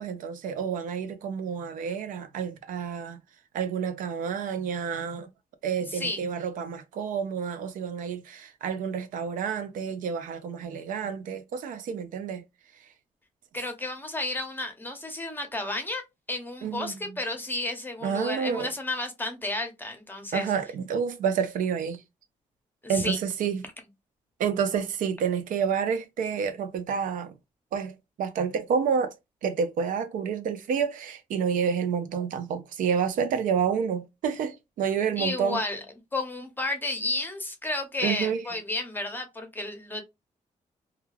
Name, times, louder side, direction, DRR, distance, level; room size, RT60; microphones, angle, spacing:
voice 1, 0.0-3.2 3.5-5.3 5.6-12.4 16.6-17.0 18.0-18.7 20.3-22.0 22.9-23.6 24.4-27.3 27.7-29.1 29.4-35.6 38.0-38.4, right 7 dB, 85° right, 0.5 m, -29 dB
voice 2, 5.9-6.2 13.5-16.0 16.3-20.5 22.8-23.2 35.2-35.8 36.1-40.0, left 2 dB, 15° left, 0.8 m, -32 dB
2.3 x 2.2 x 3.1 m
cardioid pair, 95°, 13 cm